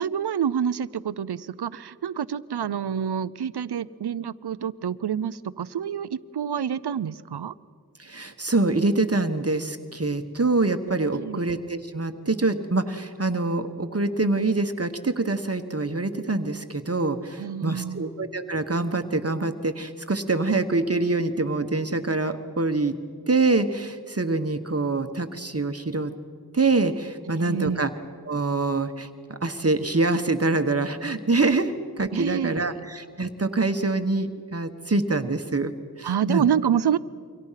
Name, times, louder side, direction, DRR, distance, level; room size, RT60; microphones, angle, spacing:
voice 1, 0.0-7.5 11.1-11.5 17.4-18.1 27.4-27.8 32.1-32.9 36.0-37.0, right 8 dB, 85° right, 17 dB, 0.6 m, -27 dB
voice 2, 8.0-22.9 23.3-26.1 26.5-27.9 28.2-35.7 36.0-36.4, right 3 dB, 40° right, 7 dB, 1.2 m, -25 dB
28.5 x 24.5 x 5.8 m, 2.1 s
wide cardioid pair, 55°, 39 cm